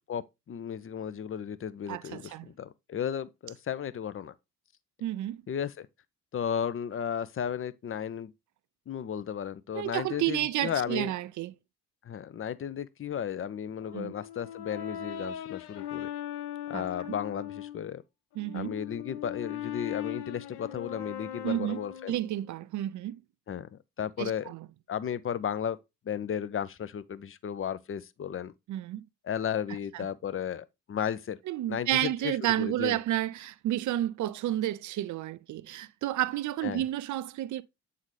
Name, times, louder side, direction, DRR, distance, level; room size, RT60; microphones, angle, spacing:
voice 1, 0.1-4.3 5.5-5.9 6.3-8.3 8.9-11.1 12.0-16.1 16.7-18.0 18.5-22.1 23.5-24.5 24.9-25.8 26.1-28.5 29.2-31.4 31.7-33.0 36.6-36.8, left 8 dB, 30° left, 0.6 m, -34 dB
voice 2, 1.9-2.5 5.0-5.4 9.7-11.5 13.9-14.1 16.7-16.8 18.4-18.7 21.4-21.8 22.1-23.2 24.2-24.7 28.7-29.0 29.9-30.1 31.5-37.6, right 13 dB, 40° right, 0.5 m, -31 dB
Brass instrument, 13.8-17.8 18.3-22.4, left 10 dB, 55° left, 1.0 m, -39 dB
8.1 x 3.8 x 3.1 m
figure-of-eight pair, 45°, 47 cm